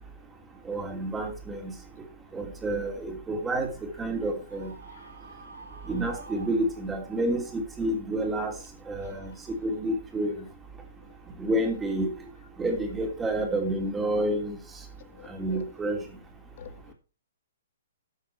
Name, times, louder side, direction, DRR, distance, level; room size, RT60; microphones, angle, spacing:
voice 1, 0.6-1.7 2.3-4.7 5.9-8.5 8.9-9.3 9.6-10.4 11.4-12.1 12.6-14.6 15.3-16.0, right 1 dB, 10° right, 2.9 m, -29 dB
Screaming, 4.5-7.2, right 3 dB, 80° right, 5.5 m, -47 dB
voice 2, 15.0-15.6 16.6-16.9, left 9 dB, 55° left, 1.9 m, -48 dB
13.0 x 6.6 x 4.5 m
hypercardioid pair, 130°, 0 cm